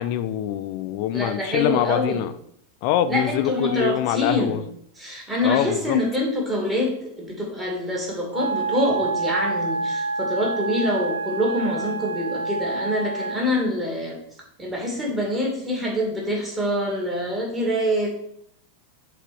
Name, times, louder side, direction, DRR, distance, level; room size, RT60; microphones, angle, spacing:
voice 1, 0.0-2.3 2.8-4.6 5.4-6.0, left 11 dB, 45° left, 12 dB, 0.5 m, -24 dB
voice 2, 1.1-2.2 3.1-4.6 5.0-14.2 14.6-18.1, left 1 dB, 10° right, -2 dB, 2.0 m, -25 dB
Wind instrument woodwind instrument, 8.3-13.5, right 3 dB, 80° right, 0.3 m, -28 dB
7.4 x 3.4 x 4.7 m, 0.71 s
figure-of-eight pair, 90°, 0 cm